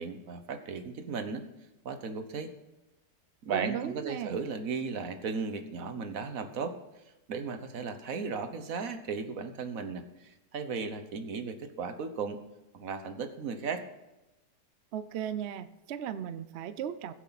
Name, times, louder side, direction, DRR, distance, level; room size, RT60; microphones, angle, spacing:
voice 1, 0.0-1.4 1.8-2.5 3.4-6.7 7.3-12.4 12.7-13.8, right 5 dB, 55° right, 9 dB, 1.4 m, -36 dB
voice 2, 3.5-4.4 14.9-17.1, right 9 dB, 80° right, 13 dB, 0.5 m, -36 dB
21.5 x 8.1 x 4.1 m, 0.99 s
omnidirectional pair, 1.8 m